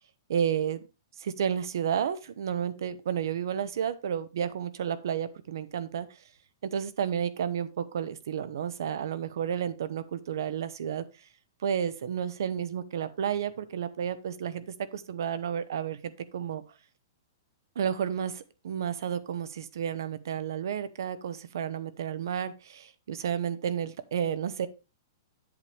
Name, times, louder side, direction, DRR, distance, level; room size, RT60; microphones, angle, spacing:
voice 1, 0.3-0.8 1.2-6.2 6.6-11.3 11.6-16.6 17.8-24.7, right 8 dB, 65° right, 14 dB, 0.8 m, -31 dB
8.0 x 7.2 x 3.4 m, 0.29 s
hypercardioid pair, 170°, 2 cm